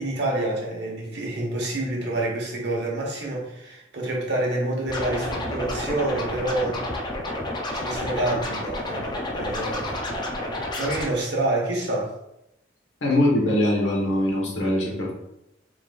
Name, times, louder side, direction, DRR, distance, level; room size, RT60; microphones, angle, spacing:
voice 1, 0.0-6.8 7.7-10.1 10.8-12.1, right 2 dB, 60° right, -2 dB, 1.3 m, -27 dB
Scratching (performance technique), 4.9-11.1, left 1 dB, 25° left, 0.5 m, -30 dB
voice 2, 13.0-15.1, left 1 dB, 75° left, -2 dB, 1.4 m, -22 dB
4.6 x 3.8 x 2.5 m, 0.84 s
head